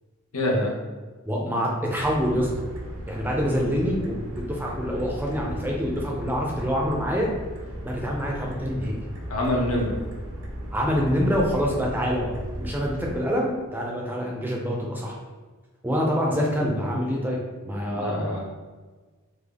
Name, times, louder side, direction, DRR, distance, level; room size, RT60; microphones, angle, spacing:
voice 1, 0.3-0.7 9.3-10.0 18.0-18.4, left 1 dB, 75° left, -2 dB, 0.8 m, -25 dB
voice 2, 1.3-2.5 3.1-7.3 7.8-9.0 10.7-12.3 12.6-15.2 15.8-17.4 17.7-18.4, equal, 10° right, -2 dB, 0.5 m, -26 dB
sound 1, 2.0-13.2, equal, 65° right, 0.6 m, -36 dB
3.4 x 2.2 x 3.5 m, 1.3 s
head